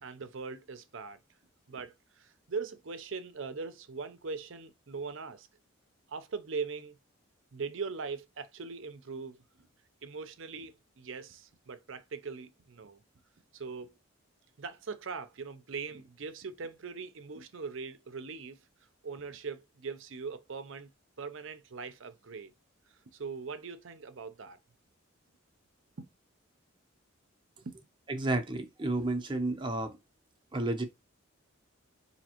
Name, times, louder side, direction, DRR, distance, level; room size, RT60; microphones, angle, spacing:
voice 1, 0.0-1.2 1.7-5.5 6.1-7.0 7.5-9.7 10.0-13.0 13.5-13.9 14.6-18.6 19.0-20.9 21.2-22.5 23.1-24.6 26.0-26.1 27.6-27.8, right 5 dB, 65° right, 0.6 m, -41 dB
voice 2, 28.1-30.0 30.5-30.8, right 2 dB, 20° right, 0.7 m, -31 dB
5.2 x 2.8 x 2.9 m
head